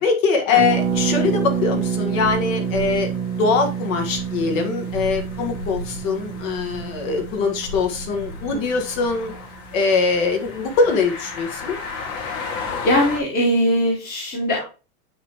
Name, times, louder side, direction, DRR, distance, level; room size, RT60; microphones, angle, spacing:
voice 1, 0.0-3.1 3.4-9.3 9.7-11.8, left 4 dB, 60° left, 4 dB, 1.6 m, -22 dB
Harp, 0.5-10.2 10.4-10.5 10.7-11.0, right 7 dB, 5° right, 0.5 m, -28 dB
sound 1, 0.6-13.2, left 3 dB, 75° left, 2.1 m, -35 dB
voice 2, 12.8-14.6, equal, 20° left, -2 dB, 1.2 m, -20 dB
9.6 x 3.4 x 2.9 m, 0.32 s
supercardioid pair, 150°, 45 cm